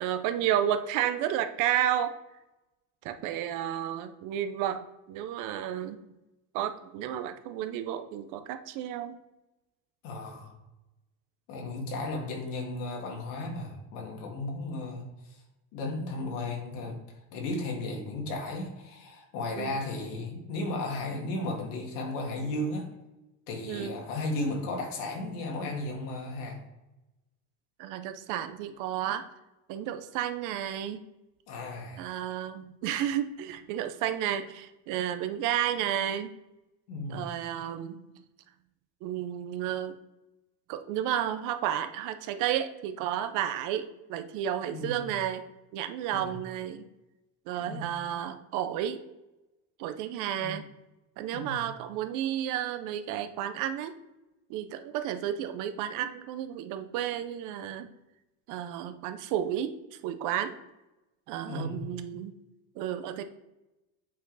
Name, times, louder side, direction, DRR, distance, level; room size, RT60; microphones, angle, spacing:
voice 1, 0.0-2.2 3.0-6.0 6.5-9.2 19.6-19.8 23.7-24.0 27.8-29.2 29.7-31.0 32.0-36.3 37.1-38.2 39.0-40.0 40.7-45.4 45.7-46.9 47.5-49.0 49.8-50.7 51.2-54.0 54.5-57.9 58.5-59.7 60.0-60.6 61.3-62.4 62.8-63.2, right 10 dB, 55° right, 10 dB, 0.6 m, -32 dB
voice 2, 10.0-10.5 11.5-15.4 15.7-22.9 23.5-26.6 31.5-32.0 36.9-37.3 44.7-45.1 46.1-46.3 47.6-47.8 50.4-50.5 51.3-51.6 61.5-61.9, left 2 dB, 75° left, 1 dB, 2.1 m, -35 dB
8.2 x 5.0 x 4.0 m, 0.98 s
cardioid pair, 170°, 38 cm